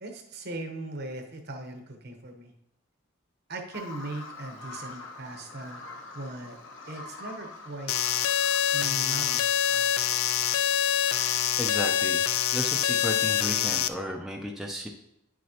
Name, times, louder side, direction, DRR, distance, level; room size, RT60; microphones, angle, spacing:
voice 1, 0.0-2.5 3.5-5.8 6.1-6.6 6.9-8.3 8.7-9.9, right 2 dB, 50° right, 4 dB, 0.9 m, -39 dB
Bird vocalization bird call bird song, 3.7-11.5, left 2 dB, 60° left, 1.2 m, -45 dB
sound 1, 7.9-13.9, left 10 dB, 80° left, 0.4 m, -25 dB
voice 2, 11.6-12.3 12.5-14.9, equal, ahead, 0 dB, 0.5 m, -34 dB
9.8 x 6.2 x 2.9 m, 0.80 s
head